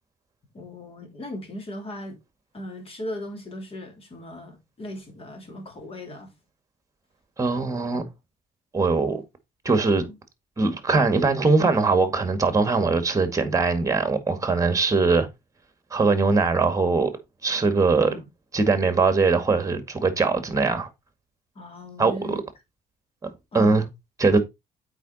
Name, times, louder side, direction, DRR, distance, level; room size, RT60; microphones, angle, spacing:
voice 1, 0.5-2.2 2.5-6.3 10.1-10.2 10.9-11.2 17.9-18.2 21.5-22.4 23.5-23.8, left 1 dB, 35° left, 3.4 m, -38 dB
voice 2, 7.4-8.0 8.7-9.2 9.7-10.1 10.6-15.3 15.9-17.1 17.4-18.2 18.5-20.9 22.0-22.4 23.2-23.9 24.2-24.4, right 4 dB, 20° right, 2.0 m, -21 dB
8.2 x 5.0 x 4.2 m
cardioid pair, 110°, 17 cm